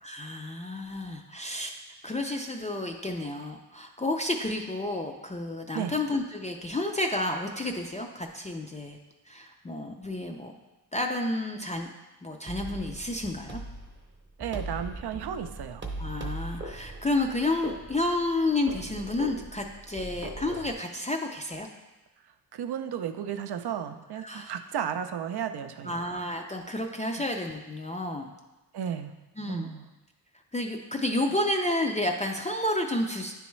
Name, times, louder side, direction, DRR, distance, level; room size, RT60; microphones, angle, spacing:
voice 1, 0.0-1.7 2.0-9.0 9.3-10.5 10.9-11.9 12.2-13.6 16.0-21.7 24.2-24.5 25.8-28.3 29.4-29.7 30.5-33.5, left 1 dB, 20° left, 2 dB, 0.4 m, -30 dB
sound 1, 12.5-20.7, right 2 dB, 30° right, 0.7 m, -40 dB
voice 2, 14.4-15.8 22.5-26.1 28.7-29.1 29.4-29.9, right 8 dB, 70° right, 9 dB, 0.5 m, -34 dB
9.5 x 3.4 x 3.1 m, 1.1 s
wide cardioid pair, 95°, 41 cm